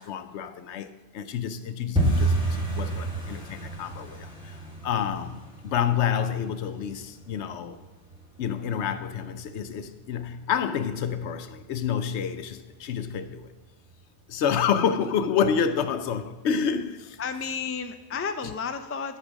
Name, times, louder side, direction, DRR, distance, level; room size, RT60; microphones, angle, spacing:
voice 1, 0.0-4.6 4.8-7.8 8.4-13.5 14.3-17.2, left 7 dB, 80° left, 0.9 m, -28 dB
sound 1, 1.9-12.7 12.9-13.6 13.9-14.2 14.4-14.8 15.1-15.2 15.7-16.3 16.6-16.7 17.2-17.3, right 2 dB, 5° right, 1.8 m, -32 dB
voice 2, 17.2-19.2, left 6 dB, 25° left, 0.3 m, -32 dB
12.0 x 4.4 x 6.2 m
omnidirectional pair, 1.2 m